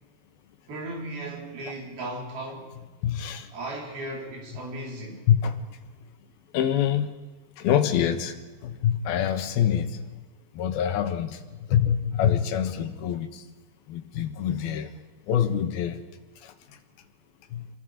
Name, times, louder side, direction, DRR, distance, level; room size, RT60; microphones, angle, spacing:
voice 1, 0.7-2.8 3.5-5.2, right 1 dB, 85° right, 6.1 m, -36 dB
voice 2, 3.0-3.5 5.3-5.5 6.5-7.1 7.6-8.3 8.6-10.0 10.6-11.4 11.7-13.4 13.9-14.9 15.3-16.0 16.4-16.5 17.5-17.6, left 9 dB, 85° left, 3.2 m, -25 dB
29.0 x 21.5 x 5.1 m
omnidirectional pair, 4.2 m